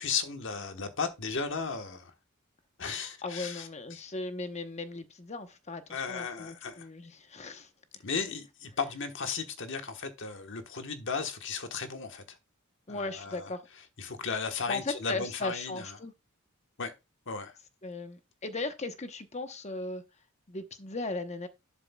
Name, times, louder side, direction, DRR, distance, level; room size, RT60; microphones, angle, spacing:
voice 1, 0.0-2.1 2.8-4.0 5.9-6.9 8.0-12.2 12.9-13.5 14.0-16.0 16.8-16.9 17.3-17.5, left 5 dB, 60° left, 1.3 m, -35 dB
voice 2, 3.2-7.7 12.9-13.7 14.7-16.1 17.8-20.0 20.5-21.5, left 3 dB, 30° left, 0.9 m, -37 dB
11.5 x 7.2 x 2.3 m
head